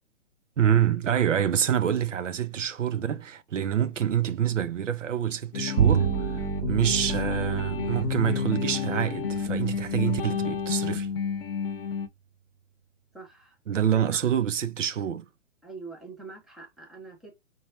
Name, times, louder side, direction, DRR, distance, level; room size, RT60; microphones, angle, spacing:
voice 1, 0.6-6.4 6.7-11.1 13.7-15.2, right 9 dB, 80° right, 0.7 m, -26 dB
sound 1, 5.5-12.1, left 7 dB, 50° left, 0.7 m, -30 dB
Bowed string instrument, 5.8-11.4, right 8 dB, 40° right, 0.6 m, -30 dB
voice 2, 13.1-13.6 14.1-14.2 15.6-17.3, right 3 dB, ahead, 0.5 m, -44 dB
4.6 x 2.3 x 4.2 m
figure-of-eight pair, 130°, 37 cm